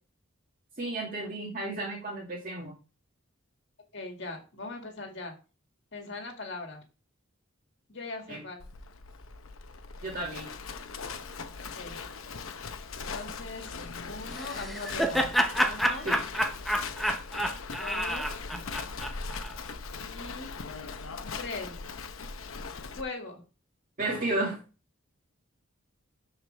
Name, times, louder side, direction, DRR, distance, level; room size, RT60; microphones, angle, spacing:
voice 1, 0.8-2.7 8.3-8.4 10.0-10.5 16.0-16.2 24.0-24.6, right 2 dB, 40° right, -3 dB, 2.2 m, -32 dB
voice 2, 3.9-5.3 5.9-6.8 7.9-8.7 11.7-12.0 13.0-13.7 14.0-15.3 15.6-16.1 17.8-18.3 19.9-20.5 21.4-21.8 22.9-23.4, left 3 dB, 60° left, 3 dB, 2.2 m, -40 dB
Livestock farm animals working animals, 8.6-23.0, left 5 dB, 80° left, 0.8 m, -40 dB
Laughter, 14.3-19.5, equal, ahead, 0.7 m, -29 dB
12.5 x 4.9 x 3.4 m, 0.34 s
head